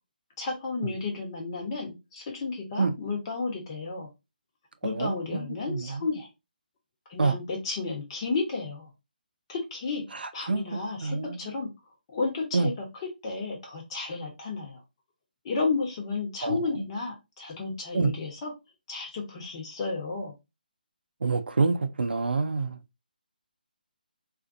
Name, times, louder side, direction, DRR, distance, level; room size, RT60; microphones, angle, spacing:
voice 1, 0.4-4.1 4.8-6.3 7.1-8.9 9.5-11.7 12.1-12.8 13.2-14.8 15.4-18.5 18.9-20.3, left 4 dB, 35° left, 1.0 m, -32 dB
voice 2, 4.8-6.1 7.2-7.4 10.1-10.6 11.0-11.4 12.5-12.7 16.4-16.8 17.9-18.1 21.2-22.8, right 4 dB, 80° right, 0.4 m, -27 dB
2.5 x 2.5 x 2.5 m
figure-of-eight pair, 155°, 5 cm